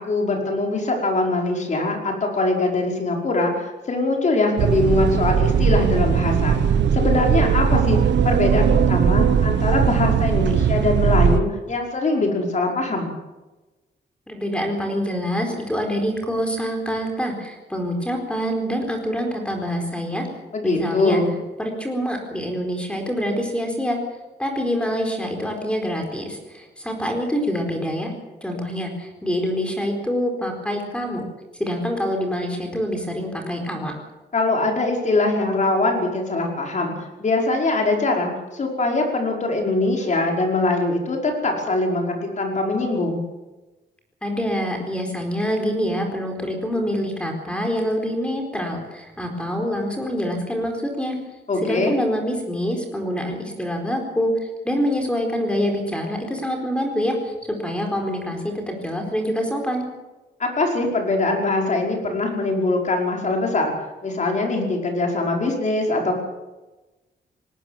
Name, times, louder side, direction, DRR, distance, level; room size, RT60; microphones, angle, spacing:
voice 1, 0.0-8.0 8.2-13.1 20.5-21.3 34.3-36.9 37.2-43.2 51.5-52.0 60.4-63.7 64.0-66.2, left 2 dB, 45° left, 1 dB, 5.2 m, -22 dB
sound 1, 4.6-11.4, right 7 dB, 85° right, 1.0 m, -19 dB
voice 2, 14.3-20.2 20.6-21.2 21.6-24.0 24.4-28.1 28.4-31.2 31.6-33.9 44.2-51.2 51.6-59.8, equal, 5° left, 3 dB, 4.3 m, -25 dB
19.5 x 18.5 x 7.4 m, 1.1 s
wide cardioid pair, 155°, 18 cm